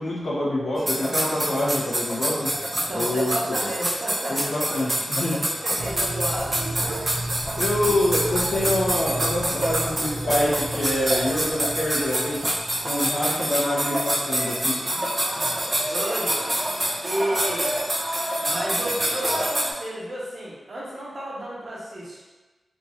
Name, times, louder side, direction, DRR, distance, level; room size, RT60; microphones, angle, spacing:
voice 1, 0.0-2.5 2.9-3.6 4.3-5.4 5.8-5.9 7.6-12.4 12.8-15.0, left 1 dB, 55° left, -6 dB, 1.0 m, -26 dB
sound 1, 0.8-19.7, right 1 dB, 25° right, 0.5 m, -26 dB
voice 2, 2.8-4.4 5.4-6.6 15.8-16.6 17.0-17.8 18.4-22.2, right 1 dB, 60° right, -6 dB, 1.0 m, -32 dB
sound 2, 5.8-13.4, right 1 dB, 85° right, 0.3 m, -34 dB
3.7 x 2.9 x 2.5 m, 1.2 s
wide cardioid pair, 125°, 0 cm